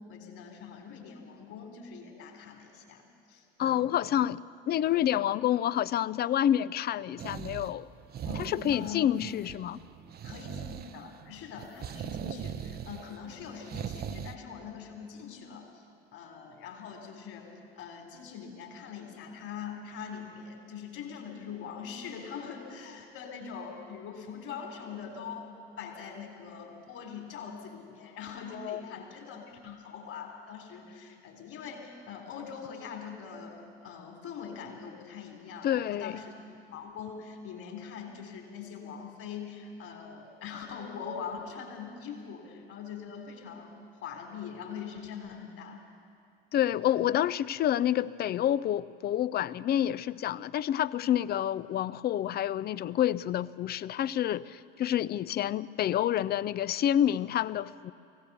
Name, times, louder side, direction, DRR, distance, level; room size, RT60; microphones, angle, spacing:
voice 1, 0.1-3.0 3.3-3.4 8.2-9.1 10.2-15.8 16.1-17.5 17.8-25.5 25.8-36.3 36.7-45.8, left 6 dB, 50° left, 3 dB, 3.7 m, -42 dB
voice 2, 3.6-4.4 4.7-7.9 8.3-9.8 28.5-28.8 35.6-36.2 46.5-57.9, left 11 dB, 35° left, 19 dB, 0.5 m, -28 dB
sound 1, 7.2-14.4, right 9 dB, 35° right, 0.7 m, -40 dB
23.0 x 16.5 x 6.9 m, 2.4 s
figure-of-eight pair, 65°, 29 cm